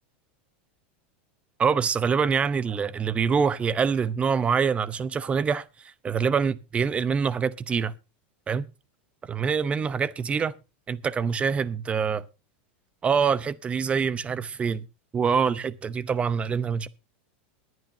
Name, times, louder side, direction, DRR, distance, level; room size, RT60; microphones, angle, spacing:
voice 1, 1.6-7.9 8.5-8.7 9.2-10.5 10.9-12.2 13.0-14.9 15.1-16.9, right 6 dB, 20° right, 0.7 m, -25 dB
21.5 x 9.2 x 2.8 m
supercardioid pair, 130°, 6 cm